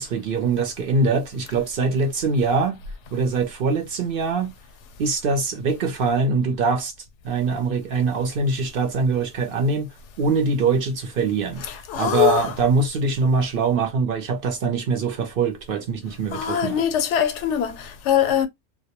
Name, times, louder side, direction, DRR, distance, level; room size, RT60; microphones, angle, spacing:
voice 1, 0.0-2.8 3.1-4.5 5.0-6.9 7.2-9.9 10.2-11.6 11.9-16.7, right 4 dB, 60° right, 0.7 m, -23 dB
voice 2, 11.6-12.6 16.3-18.5, left 10 dB, 85° left, 0.9 m, -22 dB
2.2 x 2.1 x 2.8 m
omnidirectional pair, 1.2 m